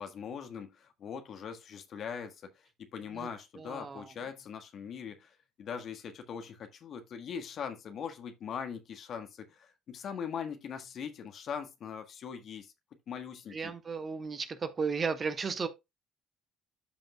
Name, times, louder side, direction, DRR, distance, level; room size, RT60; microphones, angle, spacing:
voice 1, 0.0-2.5 2.8-12.7 13.1-13.7, left 7 dB, 50° left, 1.5 m, -41 dB
voice 2, 3.6-4.1 13.5-15.7, right 5 dB, 35° right, 1.4 m, -34 dB
13.0 x 5.3 x 2.2 m
figure-of-eight pair, 50°, 0 cm